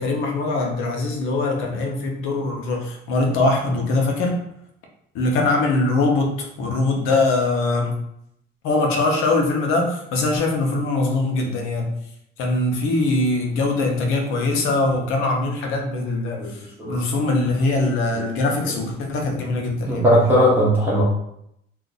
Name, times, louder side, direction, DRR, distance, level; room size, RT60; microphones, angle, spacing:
voice 1, 0.0-4.4 5.1-8.0 8.6-11.9 12.4-20.0, left 2 dB, 85° left, 1 dB, 0.8 m, -22 dB
voice 2, 16.4-17.0 18.1-18.3 19.8-21.0, equal, 10° right, -8 dB, 0.7 m, -19 dB
2.5 x 2.5 x 3.9 m, 0.75 s
cardioid pair, 170°, 20 cm